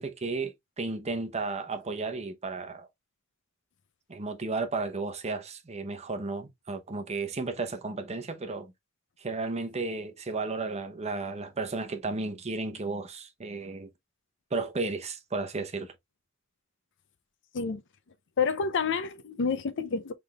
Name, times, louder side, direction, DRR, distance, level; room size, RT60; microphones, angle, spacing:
voice 1, 0.0-2.9 4.1-8.7 9.2-13.9 14.5-15.9, right 3 dB, 30° right, 0.8 m, -33 dB
voice 2, 18.4-20.1, left 5 dB, 60° left, 0.5 m, -28 dB
5.7 x 3.4 x 2.3 m
head